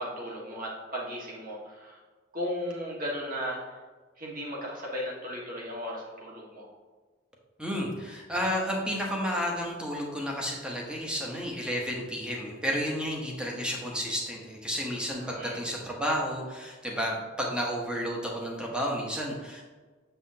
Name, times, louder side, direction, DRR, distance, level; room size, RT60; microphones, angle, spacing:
voice 1, 0.0-2.0 2.3-3.6 4.2-6.7 15.2-15.6, equal, 45° right, -3 dB, 1.6 m, -36 dB
voice 2, 7.6-19.6, equal, 5° right, -2 dB, 1.1 m, -31 dB
7.5 x 5.7 x 2.8 m, 1.4 s
head